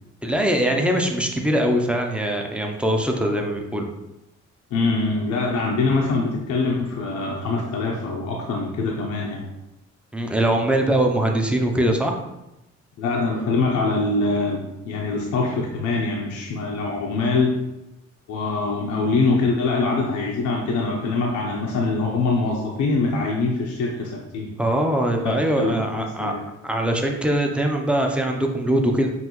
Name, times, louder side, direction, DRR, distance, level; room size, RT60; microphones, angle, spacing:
voice 1, 0.2-3.9 10.1-12.2 24.6-26.3 26.6-29.1, right 1 dB, 5° right, 2 dB, 0.6 m, -22 dB
voice 2, 4.7-9.4 13.0-17.6 18.3-24.5 25.2-26.4, left 3 dB, 75° left, -2 dB, 0.7 m, -24 dB
5.5 x 2.6 x 3.0 m, 0.91 s
cardioid pair, 90°, 30 cm